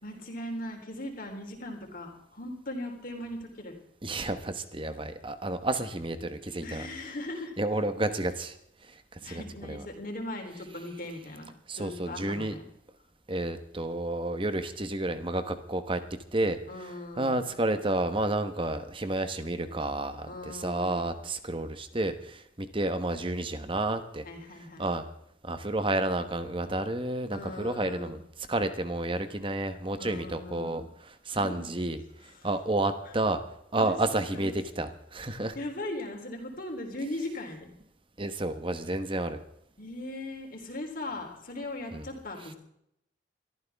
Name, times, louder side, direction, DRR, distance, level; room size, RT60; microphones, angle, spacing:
voice 1, 0.0-3.8 6.6-7.6 9.2-12.6 16.7-17.4 20.3-21.0 24.2-24.9 27.3-28.1 30.0-30.9 31.3-31.7 32.2-32.5 33.0-33.1 33.8-34.0 34.3-34.5 35.6-37.7 39.8-42.5, left 1 dB, 45° left, 2 dB, 3.6 m, -39 dB
voice 2, 4.0-6.9 7.6-8.6 8.8-9.8 11.7-12.6 13.3-16.0 16.3-24.2 24.8-25.1 25.4-28.2 28.5-33.4 33.7-35.6 38.2-39.4 41.9-42.1, right 2 dB, 25° right, 10 dB, 1.2 m, -31 dB
23.0 x 14.0 x 3.6 m, 0.74 s
head